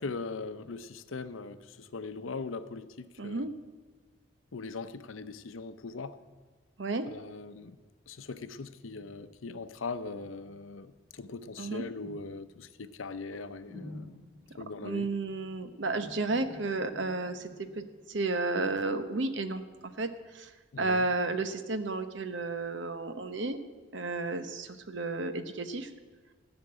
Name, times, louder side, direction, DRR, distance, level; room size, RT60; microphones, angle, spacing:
voice 1, 0.0-3.5 4.5-6.1 7.1-7.8 8.1-14.2 14.6-15.1 20.7-21.1, left 4 dB, 90° left, 12 dB, 0.7 m, -40 dB
voice 2, 3.2-3.5 6.8-7.0 11.6-11.9 14.8-17.5 18.1-19.6 20.0-20.1 20.3-20.5 20.8-23.6 23.9-25.9, right 3 dB, 65° right, 9 dB, 0.9 m, -32 dB
sound 1, 8.5-19.5, left 2 dB, 50° right, 5.1 m, -53 dB
15.0 x 6.0 x 8.8 m, 1.4 s
head